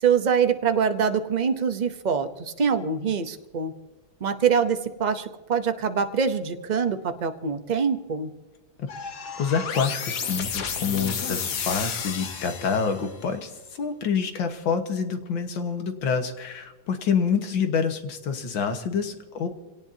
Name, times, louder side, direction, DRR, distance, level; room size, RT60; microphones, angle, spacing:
voice 1, 0.0-3.7 4.2-8.3, right 6 dB, 50° right, 8 dB, 0.5 m, -24 dB
sound 1, 8.9-13.2, left 6 dB, 60° left, 1.6 m, -32 dB
voice 2, 9.4-13.5 13.8-19.5, left 6 dB, 85° left, 7 dB, 2.1 m, -27 dB
25.5 x 18.0 x 2.8 m, 1.2 s
omnidirectional pair, 2.1 m